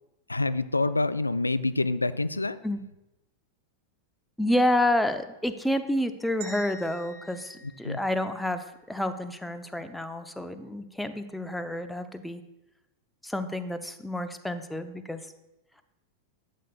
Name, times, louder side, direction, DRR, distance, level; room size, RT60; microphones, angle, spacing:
voice 1, 0.3-2.6 7.8-8.0, left 2 dB, 80° left, 13 dB, 0.4 m, -27 dB
voice 2, 4.4-12.4 13.2-15.2, left 1 dB, 5° left, 9 dB, 0.7 m, -29 dB
sound 1, 6.4-8.7, right 1 dB, 45° right, 3.1 m, -45 dB
11.5 x 8.3 x 2.4 m, 0.92 s
figure-of-eight pair, 90°, 0 cm